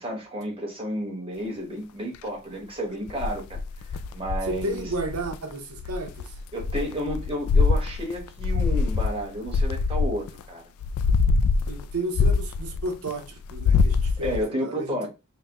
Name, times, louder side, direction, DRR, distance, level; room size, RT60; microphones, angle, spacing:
voice 1, 0.0-3.6 4.1-4.9 6.5-10.6 14.2-15.1, equal, 25° right, 1.4 m, -31 dB
sound 1, 3.1-5.4 5.8-10.4 10.8-13.1 13.4-14.4, left 4 dB, 70° left, 0.3 m, -24 dB
voice 2, 4.5-6.3 11.7-15.1, right 1 dB, 80° right, 0.9 m, -32 dB
5.7 x 2.2 x 3.0 m
head